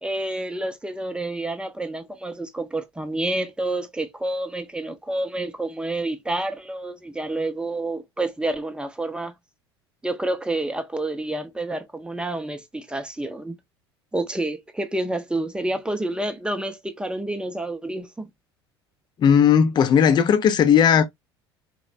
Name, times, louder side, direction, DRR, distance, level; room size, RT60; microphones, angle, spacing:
voice 1, 0.0-9.3 10.0-13.6 14.1-18.3, right 2 dB, 5° right, 0.7 m, -29 dB
voice 2, 19.2-21.1, left 8 dB, 30° left, 0.6 m, -16 dB
4.0 x 2.2 x 2.2 m
figure-of-eight pair, 65°, 14 cm